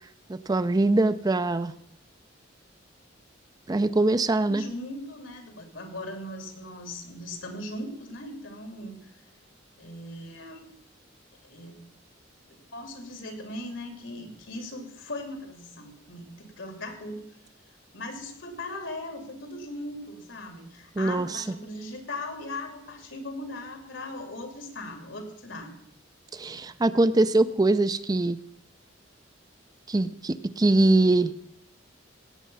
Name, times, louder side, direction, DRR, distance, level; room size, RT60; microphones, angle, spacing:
voice 1, 0.3-1.7 3.7-4.6 21.0-21.4 26.3-28.4 29.9-31.3, right 2 dB, 20° right, 12 dB, 0.4 m, -23 dB
voice 2, 4.5-9.1 9.8-10.7 11.4-11.8 12.5-17.2 17.9-25.8, left 1 dB, 80° left, 5 dB, 2.9 m, -39 dB
17.5 x 8.3 x 5.5 m, 0.75 s
head